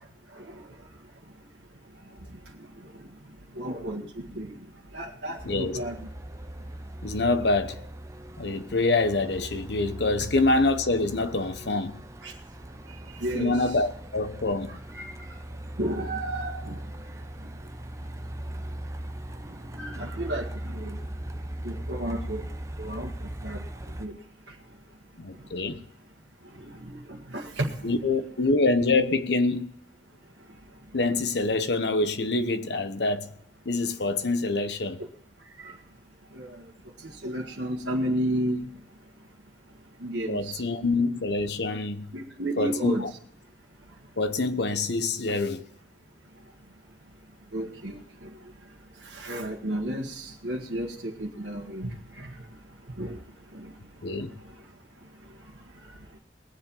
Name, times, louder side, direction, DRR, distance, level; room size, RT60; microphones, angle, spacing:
voice 1, 3.6-4.0 4.3-4.5 4.9-5.9 12.2-12.3 13.2-13.6 15.0-15.1 15.8-16.7 19.7-20.4 20.8-20.9 21.6-22.4 22.8-23.1 23.4-23.6 24.0-24.1 26.9-27.0 27.3-27.7 36.4-36.5 37.2-38.6 40.0-40.6 42.1-43.0 47.5-48.0 49.2-50.1 50.4-50.9 51.2-51.9 53.0-53.1, right 1 dB, 85° right, 1.7 m, -31 dB
voice 2, 5.4-5.8 7.0-7.8 8.4-12.0 13.3-14.8 25.2-25.8 27.8-29.7 30.9-33.3 33.6-35.0 40.3-42.1 42.6-43.1 44.2-45.6 54.0-54.3, left 3 dB, 75° left, 1.0 m, -26 dB
Truck, 5.4-24.1, right 1 dB, 15° right, 0.7 m, -39 dB
20.5 x 7.6 x 5.5 m
head